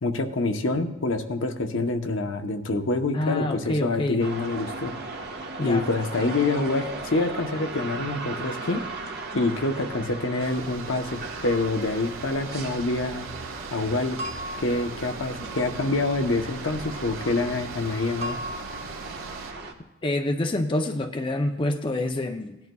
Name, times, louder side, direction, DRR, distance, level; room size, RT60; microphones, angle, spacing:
voice 1, 0.0-4.9 5.6-8.8 9.3-13.3 13.7-14.2 14.6-18.4, left 2 dB, 70° left, 5 dB, 0.8 m, -26 dB
voice 2, 3.1-4.2 5.6-5.8 20.0-22.6, left 1 dB, 25° left, 4 dB, 0.5 m, -27 dB
sound 1, 4.2-19.7, right 3 dB, 55° right, 1.2 m, -37 dB
sound 2, 10.4-19.5, right 5 dB, 80° right, 0.5 m, -42 dB
sound 3, 14.2-15.5 18.2-19.4, equal, 30° right, 1.2 m, -37 dB
18.0 x 10.5 x 2.3 m, 1.0 s
head